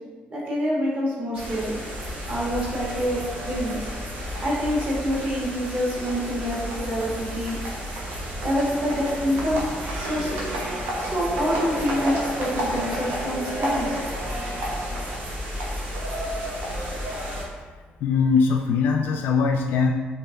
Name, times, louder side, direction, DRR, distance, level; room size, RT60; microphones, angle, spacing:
voice 1, 0.3-1.8 2.3-3.9 4.4-7.6 8.4-9.6 9.9-10.5 11.0-14.0, equal, 35° right, -6 dB, 1.4 m, -26 dB
sound 1, 1.3-17.5, equal, 80° right, 1.1 m, -31 dB
voice 2, 18.0-19.9, left 5 dB, 70° left, 2 dB, 0.3 m, -21 dB
4.5 x 3.5 x 3.3 m, 1.4 s
cardioid pair, 160°, 4 cm